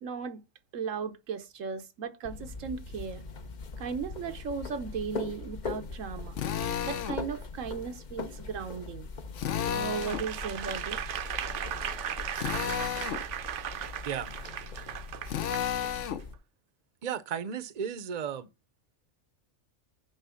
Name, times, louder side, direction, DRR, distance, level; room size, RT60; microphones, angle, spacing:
voice 1, 0.0-0.4 0.7-3.2 3.8-6.4 6.8-9.1 9.7-11.0, right 6 dB, 90° right, 1.3 m, -36 dB
sound 1, 2.2-16.3, left 4 dB, 45° left, 0.8 m, -41 dB
Drill, 6.4-7.2 9.4-10.3 12.3-13.2 15.3-16.2, left 9 dB, 70° left, 1.1 m, -32 dB
Applause / Crowd, 9.9-15.7 16.2-16.3, right 9 dB, 70° right, 1.0 m, -36 dB
voice 2, 17.0-18.5, right 8 dB, 40° right, 0.7 m, -34 dB
9.8 x 3.3 x 7.0 m
omnidirectional pair, 1.3 m